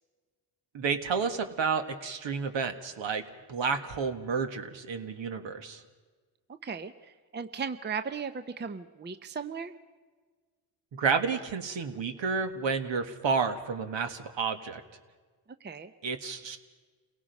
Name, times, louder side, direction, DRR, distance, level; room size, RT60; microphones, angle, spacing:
voice 1, 0.7-3.2 3.5-5.8 10.9-14.8 16.0-16.6, right 5 dB, 65° right, 7 dB, 1.8 m, -30 dB
voice 2, 6.6-9.7 15.6-15.9, right 6 dB, 20° right, 10 dB, 0.7 m, -37 dB
28.5 x 17.5 x 5.4 m, 1.4 s
cardioid pair, 75°, 49 cm